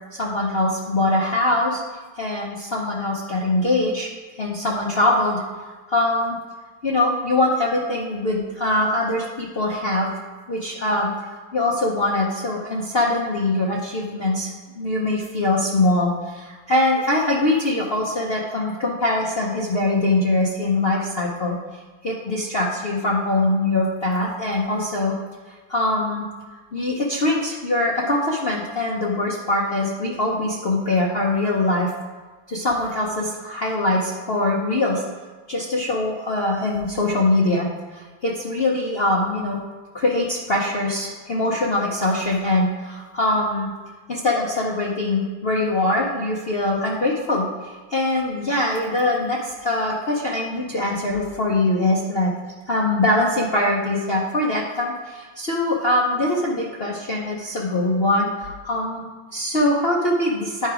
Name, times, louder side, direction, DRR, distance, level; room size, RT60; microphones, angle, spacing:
voice 1, 0.1-1.8 2.2-4.1 4.3-5.4 5.9-6.4 6.8-10.1 10.5-14.5 14.8-25.1 25.5-26.3 26.7-31.9 32.5-35.0 35.5-37.7 37.9-39.6 39.9-43.7 44.1-52.3 52.7-60.7, left 2 dB, 70° left, -3 dB, 0.5 m, -22 dB
9.8 x 4.8 x 4.9 m, 1.3 s
omnidirectional pair, 2.3 m